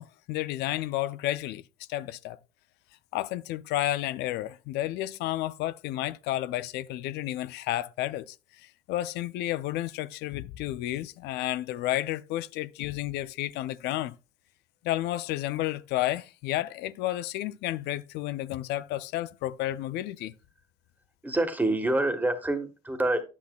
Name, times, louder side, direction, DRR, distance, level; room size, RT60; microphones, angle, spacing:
voice 1, 0.0-1.6 1.9-2.4 3.1-14.1 14.8-20.3, left 14 dB, 85° left, 0.4 m, -31 dB
voice 2, 21.2-23.2, right 2 dB, 10° right, 1.3 m, -26 dB
9.8 x 8.3 x 2.2 m
cardioid pair, 110°, 17 cm